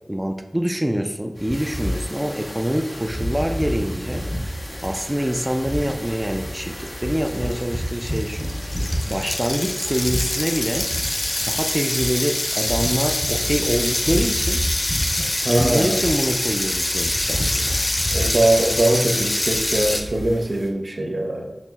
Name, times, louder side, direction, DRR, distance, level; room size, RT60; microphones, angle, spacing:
voice 1, 0.1-4.3 4.8-8.5 9.0-10.9 11.5-14.6 15.5-17.9, equal, 15° right, 5 dB, 0.4 m, -25 dB
sound 1, 1.4-20.7, equal, 5° left, 1.4 m, -30 dB
sound 2, 6.9-7.0 7.2-20.0, left 1 dB, 45° left, 0.5 m, -25 dB
voice 2, 15.4-16.0 18.1-21.5, right 1 dB, 75° right, 2 dB, 0.5 m, -21 dB
5.7 x 3.1 x 2.3 m, 1.0 s
wide cardioid pair, 45°, 0 cm